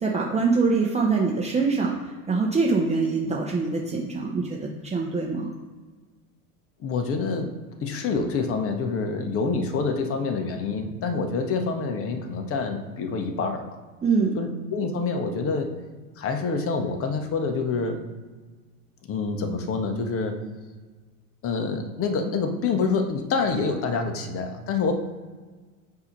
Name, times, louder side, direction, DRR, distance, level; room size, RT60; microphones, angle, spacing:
voice 1, 0.0-1.9 2.3-5.5 14.0-14.4, right 4 dB, 15° right, -2 dB, 0.8 m, -24 dB
voice 2, 6.8-7.5 7.8-13.8 14.3-15.7 16.2-18.0 19.0-20.4 21.4-25.0, left 4 dB, 30° left, 5 dB, 0.9 m, -27 dB
8.0 x 2.8 x 5.2 m, 1.4 s
hypercardioid pair, 95°, 44 cm